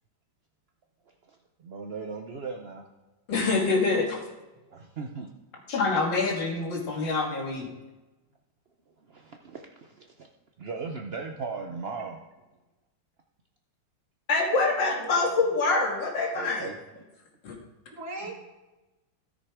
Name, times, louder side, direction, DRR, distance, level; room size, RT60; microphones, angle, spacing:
voice 1, 1.3-2.8 4.7-5.3 9.1-10.3 10.6-12.2 16.3-16.8, right 4 dB, 80° right, 2 dB, 0.5 m, -38 dB
voice 2, 3.3-4.2 5.7-7.7 14.3-16.6 17.4-17.6, left 3 dB, 75° left, 0 dB, 2.5 m, -25 dB
voice 3, 14.5-15.5 18.0-18.3, right 3 dB, 55° right, -3 dB, 2.7 m, -39 dB
13.0 x 6.5 x 4.9 m, 1.1 s
omnidirectional pair, 2.0 m